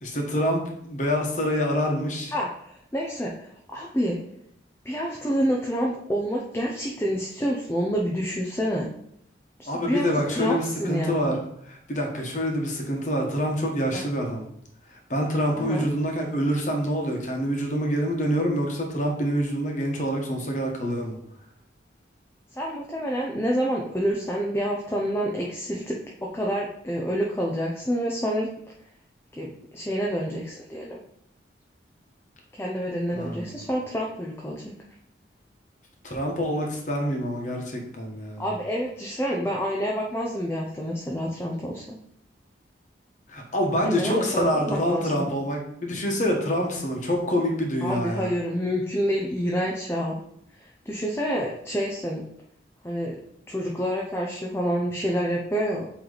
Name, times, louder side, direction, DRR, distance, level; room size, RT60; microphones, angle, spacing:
voice 1, 0.0-2.3 9.7-11.4 11.7-14.4 14.9-21.1 33.1-33.6 36.0-38.4 43.3-48.3, equal, 40° left, 1 dB, 1.3 m, -26 dB
voice 2, 2.3-4.2 4.8-8.9 9.6-11.3 13.9-14.1 15.6-15.9 22.5-28.5 29.4-31.0 32.5-34.7 38.4-42.0 43.8-45.3 47.8-50.2 50.6-52.2 52.8-53.2 53.5-55.8, equal, 15° left, -2 dB, 0.6 m, -28 dB
7.8 x 3.2 x 4.0 m, 0.71 s
head